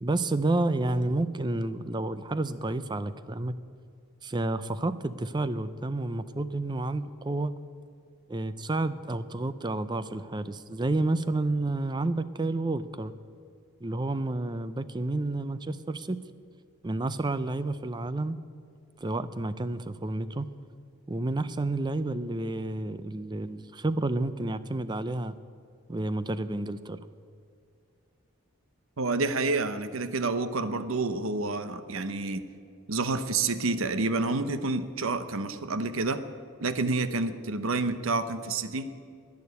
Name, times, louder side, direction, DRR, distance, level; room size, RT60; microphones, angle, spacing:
voice 1, 0.0-3.5 4.2-7.5 8.3-13.1 13.8-16.2 16.8-18.4 19.0-20.5 21.1-25.3 25.9-27.0, right 2 dB, 20° right, 14 dB, 0.5 m, -30 dB
voice 2, 29.0-32.4 32.9-36.2 36.6-38.9, right 3 dB, 70° right, 11 dB, 0.8 m, -29 dB
11.0 x 10.5 x 9.5 m, 2.4 s
head